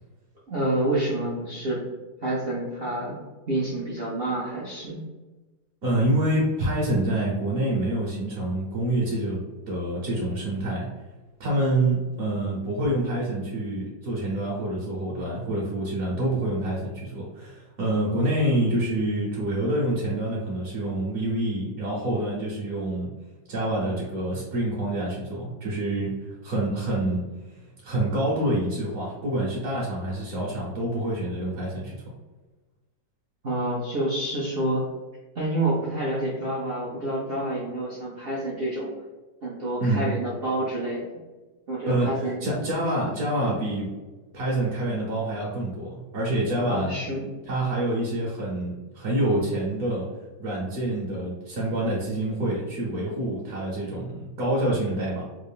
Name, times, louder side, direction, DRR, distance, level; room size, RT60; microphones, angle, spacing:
voice 1, 0.5-1.8 2.2-5.0 33.4-34.9 35.3-38.9 39.4-41.0 41.7-42.4 46.7-47.2, right 1 dB, 80° right, -6 dB, 0.5 m, -28 dB
voice 2, 5.8-9.4 9.7-10.9 11.4-23.1 23.5-27.2 27.5-31.9 39.8-40.1 41.9-43.9 44.3-47.0 47.5-50.1 50.4-55.2, right 1 dB, 55° right, -6 dB, 1.3 m, -27 dB
3.5 x 2.4 x 3.4 m, 1.2 s
omnidirectional pair, 2.0 m